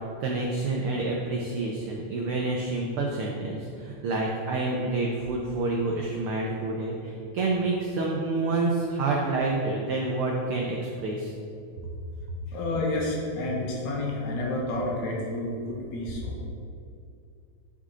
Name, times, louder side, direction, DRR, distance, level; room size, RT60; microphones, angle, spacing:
voice 1, 0.2-11.3, right 3 dB, 85° right, -1 dB, 1.2 m, -28 dB
voice 2, 12.5-16.4, left 2 dB, 80° left, -3 dB, 2.6 m, -30 dB
11.0 x 3.7 x 3.7 m, 2.5 s
omnidirectional pair, 3.3 m